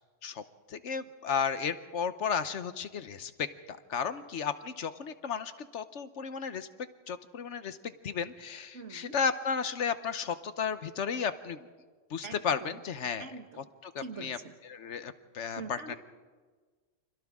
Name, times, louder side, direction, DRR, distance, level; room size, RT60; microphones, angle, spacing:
voice 1, 0.7-6.7 7.1-11.7 12.1-13.3 13.8-14.4 14.7-15.9, left 6 dB, 65° left, 12 dB, 1.2 m, -34 dB
voice 2, 8.7-9.2 12.2-12.8 13.2-13.7 14.0-14.5 15.6-16.0, right 4 dB, 65° right, 7 dB, 1.8 m, -44 dB
30.0 x 26.0 x 3.6 m, 1.4 s
omnidirectional pair, 1.3 m